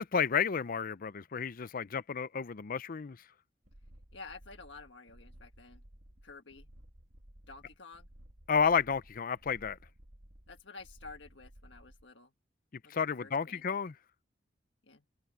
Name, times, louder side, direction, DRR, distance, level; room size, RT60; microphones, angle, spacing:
voice 1, 0.0-3.2 8.5-9.8 12.9-13.9, left 6 dB, 50° left, 0.5 m, -31 dB
sound 1, 3.6-12.1, equal, 65° right, 2.7 m, -57 dB
voice 2, 4.1-5.8 6.2-6.7 7.5-8.1 10.5-12.3 12.8-13.6 14.9-15.0, left 4 dB, 75° left, 1.6 m, -51 dB
head